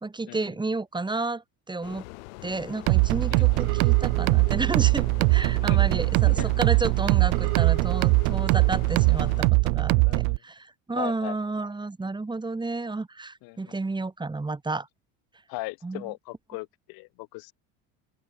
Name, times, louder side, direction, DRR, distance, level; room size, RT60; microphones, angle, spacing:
voice 1, 0.0-2.0 2.4-14.9 15.8-16.1, right 3 dB, 10° right, 1.8 m, -31 dB
sound 1, 1.8-9.5, left 28 dB, 80° left, 3.4 m, -43 dB
sound 2, 2.9-10.4, right 39 dB, 70° right, 0.5 m, -21 dB
voice 2, 3.3-3.8 5.6-5.8 6.3-6.5 9.9-10.4 10.9-11.4 13.4-13.8 15.5-17.5, left 24 dB, 60° left, 0.8 m, -38 dB
open air
supercardioid pair, 105°, 40 cm